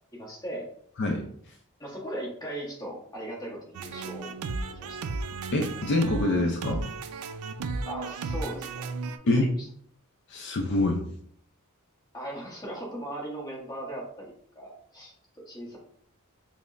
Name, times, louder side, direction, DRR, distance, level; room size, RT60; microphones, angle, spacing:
voice 1, 0.1-0.7 1.8-4.3 4.7-5.0 7.9-8.9 9.4-9.7 12.1-15.8, right 1 dB, 20° left, -4 dB, 1.0 m, -38 dB
sound 1, 3.7-9.2, right 3 dB, 80° right, 0.3 m, -34 dB
voice 2, 5.5-6.9 9.3-9.5 10.3-11.0, left 2 dB, 55° left, 1 dB, 0.4 m, -25 dB
5.2 x 2.1 x 2.4 m, 0.63 s
head